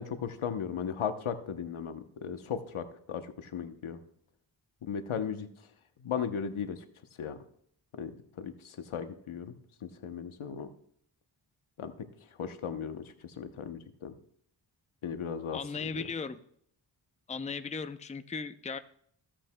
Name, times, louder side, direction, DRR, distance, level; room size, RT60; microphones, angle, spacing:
voice 1, 0.0-4.0 4.8-5.5 6.0-6.8 7.2-7.4 8.0-8.1 8.4-9.5 9.8-10.7 11.8-12.1 12.4-14.1 15.0-15.6 15.9-16.0, left 7 dB, 80° left, 9 dB, 1.0 m, -36 dB
voice 2, 15.5-16.4 17.3-18.8, left 5 dB, 15° left, 11 dB, 0.5 m, -37 dB
15.5 x 8.8 x 2.2 m, 0.66 s
cardioid pair, 45°, 48 cm